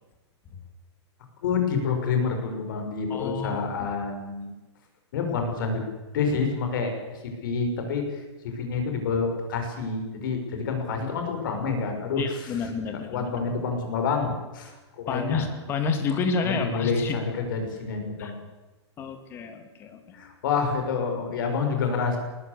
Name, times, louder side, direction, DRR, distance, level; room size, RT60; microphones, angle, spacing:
voice 1, 1.4-4.5 5.1-5.8 6.1-12.7 13.1-15.4 16.4-18.4 20.1-22.2, left 5 dB, 45° left, 5 dB, 6.4 m, -28 dB
voice 2, 3.1-3.6 12.2-13.2 15.1-17.2 18.2-18.3 19.0-20.0, left 5 dB, 15° left, 7 dB, 2.3 m, -29 dB
20.5 x 20.0 x 8.4 m, 1.2 s
hypercardioid pair, 175°, 15 cm